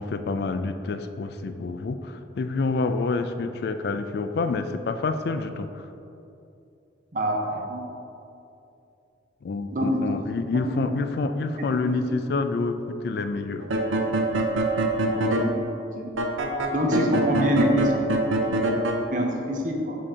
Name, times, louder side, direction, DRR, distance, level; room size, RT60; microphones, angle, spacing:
voice 1, 0.0-5.9 9.4-13.7, left 3 dB, 55° left, 9 dB, 0.3 m, -28 dB
voice 2, 7.1-7.9 9.7-10.1 10.7-10.9 12.1-12.2 15.1-15.5 16.0-16.1 16.7-18.0 18.6-20.0, equal, 40° right, 1 dB, 0.7 m, -26 dB
sound 1, 13.6-15.5 16.2-19.0, right 2 dB, 90° right, 0.6 m, -24 dB
7.5 x 2.8 x 4.8 m, 2.7 s
head